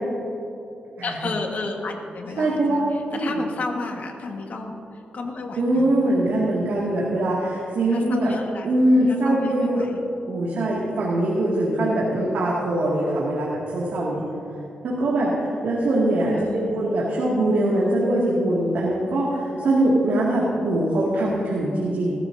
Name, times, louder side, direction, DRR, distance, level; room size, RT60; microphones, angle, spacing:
voice 1, 1.0-5.9 7.9-8.7 8.9-10.0 16.3-16.8, left 3 dB, 60° left, 2 dB, 1.6 m, -32 dB
voice 2, 2.4-2.8 3.1-3.4 5.6-8.3 8.6-9.9 10.3-14.2 14.8-22.1, right 1 dB, 80° right, -5 dB, 2.3 m, -22 dB
19.5 x 13.5 x 2.8 m, 2.8 s
wide cardioid pair, 110°, 3 cm